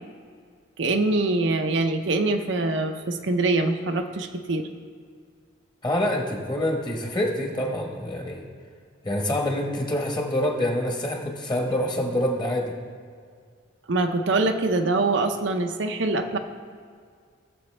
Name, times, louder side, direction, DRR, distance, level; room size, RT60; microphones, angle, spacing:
voice 1, 0.8-4.7 13.9-16.4, right 2 dB, 60° right, 6 dB, 0.6 m, -24 dB
voice 2, 5.8-8.4 9.0-12.7, left 1 dB, 20° left, 1 dB, 1.2 m, -26 dB
17.5 x 7.2 x 3.3 m, 2.1 s
head